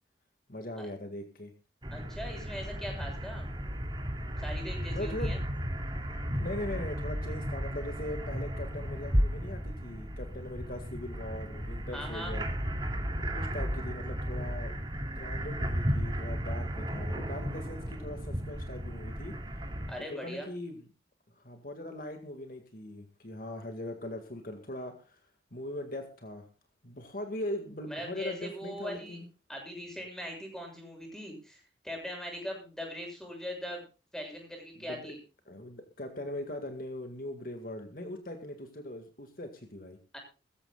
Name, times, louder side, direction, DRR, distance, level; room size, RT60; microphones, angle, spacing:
voice 1, 0.5-1.5 4.9-5.3 6.4-12.4 13.3-14.8 15.0-19.4 20.1-20.8 21.3-26.5 26.8-29.3 34.8-35.2 35.5-40.0, left 1 dB, 50° left, 6 dB, 2.0 m, -40 dB
sound 1, 1.8-19.9, equal, 25° right, 2.7 m, -34 dB
voice 2, 1.9-3.5 4.4-5.4 11.9-12.4 19.9-20.5 27.9-29.2 29.5-33.8 34.1-35.2 40.1-40.2, equal, 5° left, 1 dB, 7.2 m, -40 dB
22.0 x 14.5 x 2.4 m, 0.32 s
head